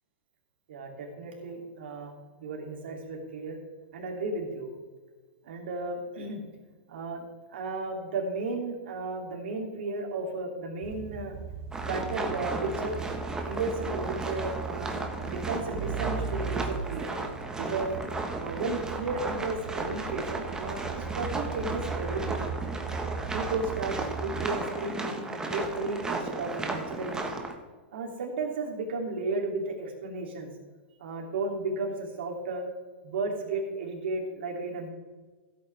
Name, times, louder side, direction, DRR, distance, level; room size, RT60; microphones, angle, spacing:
voice 1, 0.7-3.6 3.9-4.7 5.4-6.4 6.9-11.4 11.9-13.0 13.3-15.0 15.3-17.1 17.6-18.0 18.4-22.5 23.3-27.3 27.9-30.5 31.0-32.7 33.0-34.9, right 3 dB, 70° right, 1 dB, 3.0 m, -34 dB
sound 1, 10.8-24.5, right 6 dB, 40° right, 0.8 m, -38 dB
sound 2, 11.7-27.5, right 2 dB, 10° right, 1.4 m, -35 dB
15.5 x 8.4 x 3.5 m, 1.3 s
hypercardioid pair, 125°, 6 cm